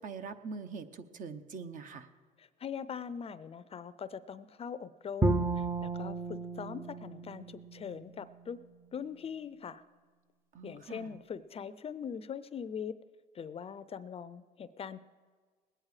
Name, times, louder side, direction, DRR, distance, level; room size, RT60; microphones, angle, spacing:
voice 1, 0.0-2.1 10.5-11.2, right 5 dB, 50° right, 9 dB, 0.9 m, -43 dB
voice 2, 2.4-8.6 8.9-9.8 10.6-12.9 13.3-15.0, left 7 dB, 35° left, 14 dB, 0.5 m, -42 dB
Bowed string instrument, 5.2-8.3, right 3 dB, 15° right, 0.6 m, -33 dB
20.0 x 8.9 x 4.9 m, 1.5 s
cardioid pair, 110°, 17 cm